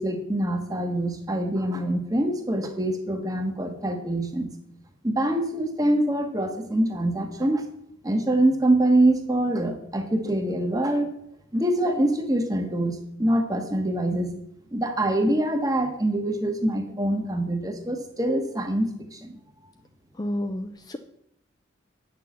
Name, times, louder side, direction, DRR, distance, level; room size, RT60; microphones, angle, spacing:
voice 1, 0.0-4.5 5.0-7.7 8.0-11.1 11.5-14.4 14.7-19.3, right 1 dB, 15° right, 5 dB, 1.2 m, -24 dB
voice 2, 20.1-21.0, left 1 dB, 20° left, 7 dB, 0.4 m, -30 dB
8.9 x 6.2 x 7.0 m, 0.76 s
head